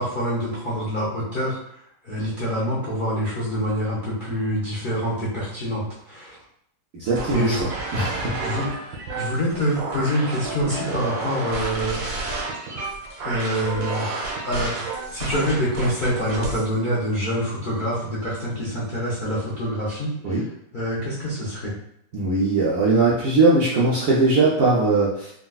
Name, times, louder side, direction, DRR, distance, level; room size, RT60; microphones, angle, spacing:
voice 1, 0.0-1.6 2.0-6.4 7.3-8.7 9.1-12.0 12.7-12.8 13.2-14.8 15.1-20.4 20.7-21.7, equal, 60° left, -8 dB, 0.5 m, -26 dB
voice 2, 6.9-8.4 20.2-20.4 22.1-25.3, right 3 dB, 75° right, -6 dB, 0.8 m, -20 dB
sound 1, 7.0-16.7, right 3 dB, 90° right, 1.6 m, -30 dB
3.8 x 2.2 x 2.3 m, 0.72 s
omnidirectional pair, 2.0 m